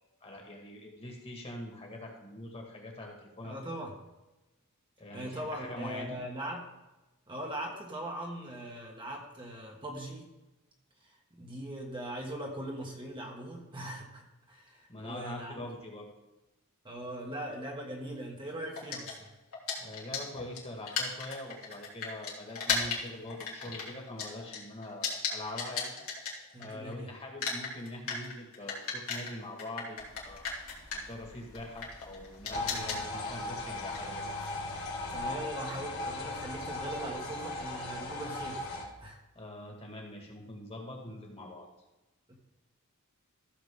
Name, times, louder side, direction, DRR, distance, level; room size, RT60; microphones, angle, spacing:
voice 1, 0.2-3.6 5.0-6.2 14.9-16.1 19.8-26.0 26.6-30.5 30.9-34.2 39.4-41.7, left 1 dB, 25° left, 1 dB, 2.0 m, -43 dB
voice 2, 3.4-4.0 5.1-6.7 7.3-10.3 11.0-15.6 16.8-19.3 26.5-27.1 32.5-33.0 35.1-38.7 39.0-39.2 42.3-42.4, right 1 dB, 20° right, -1 dB, 1.4 m, -40 dB
sound 1, 18.7-26.9 27.2-35.5, left 5 dB, 70° left, 2.8 m, -37 dB
sound 2, 32.5-38.8, left 2 dB, 45° left, 2.4 m, -37 dB
15.0 x 7.0 x 3.8 m, 1.0 s
head